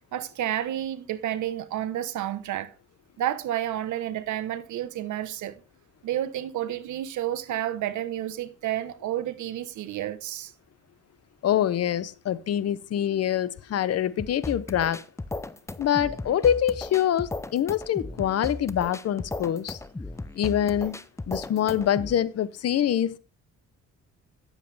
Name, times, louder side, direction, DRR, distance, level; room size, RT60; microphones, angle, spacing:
voice 1, 0.1-2.7 3.2-5.6 6.0-10.5, right 12 dB, 75° right, 1.0 m, -30 dB
voice 2, 11.4-15.0 15.8-19.8 20.3-21.0 21.3-23.2, left 10 dB, 55° left, 0.7 m, -25 dB
sound 1, 14.2-22.2, left 2 dB, 10° left, 0.5 m, -36 dB
9.6 x 7.5 x 3.3 m
cardioid pair, 90°, 30 cm